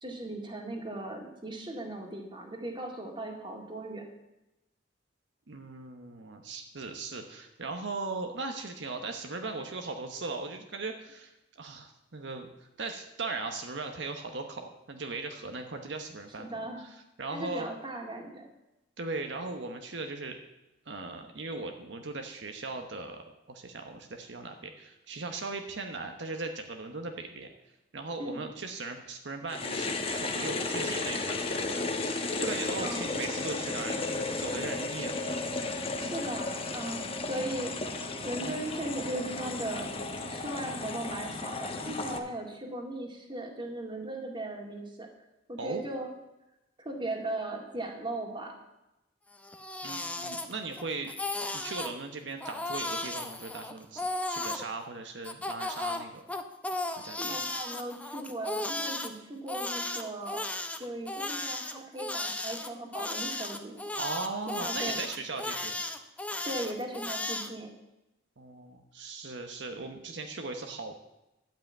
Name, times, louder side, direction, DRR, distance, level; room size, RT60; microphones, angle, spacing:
voice 1, 0.0-4.0 16.4-16.8 17.3-18.5 28.2-28.4 32.8-33.1 36.0-39.9 40.2-45.1 45.5-46.1 46.8-48.5 57.2-60.4 60.8-63.7 64.6-65.0 66.4-67.7, right 1 dB, 25° right, 2 dB, 2.0 m, -38 dB
voice 2, 5.5-16.5 16.8-17.7 19.0-20.4 20.9-27.5 27.9-35.4 45.6-45.8 49.8-51.1 51.5-56.2 57.0-57.4 64.0-65.8 68.4-70.9, right 3 dB, 70° right, 5 dB, 1.0 m, -38 dB
sound 1, 29.5-42.2, left 3 dB, 30° left, 1.1 m, -34 dB
Crying sobbing, 49.3-50.8 51.1-51.9 52.4-54.6 55.2-59.1 59.5-67.5, left 2 dB, 10° left, 0.7 m, -35 dB
12.0 x 5.7 x 8.6 m, 0.94 s
head